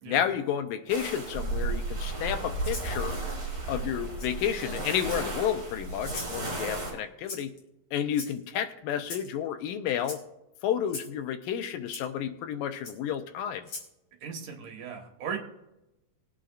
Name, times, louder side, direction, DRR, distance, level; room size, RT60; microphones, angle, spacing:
voice 1, 0.1-3.2 3.7-7.5 7.9-10.2 10.6-13.7, left 9 dB, 80° left, 8 dB, 2.5 m, -31 dB
sound 1, 0.9-6.9, right 3 dB, 35° right, 5.2 m, -34 dB
Rattle (instrument), 2.6-2.9 4.2-4.3 5.0-5.5 6.0-6.4 7.3-7.6 8.1-8.6 9.0-9.3 10.0-10.2 10.9-11.1 11.9-12.0 12.8-13.0 13.6-13.9, left 3 dB, 40° left, 3.1 m, -40 dB
voice 2, 14.2-15.4, right 7 dB, 65° right, 2 dB, 2.9 m, -37 dB
21.0 x 8.9 x 2.5 m, 0.92 s
omnidirectional pair, 4.0 m